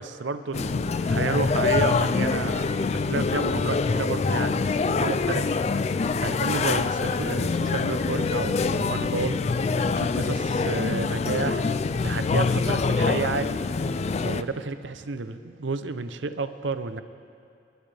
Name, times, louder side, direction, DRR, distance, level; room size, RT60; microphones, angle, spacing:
voice 1, 0.0-13.6 14.2-17.0, right 4 dB, 75° right, 11 dB, 0.6 m, -31 dB
sound 1, 0.5-14.4, left 4 dB, 35° left, 0.3 m, -25 dB
29.5 x 11.0 x 3.4 m, 2.4 s
head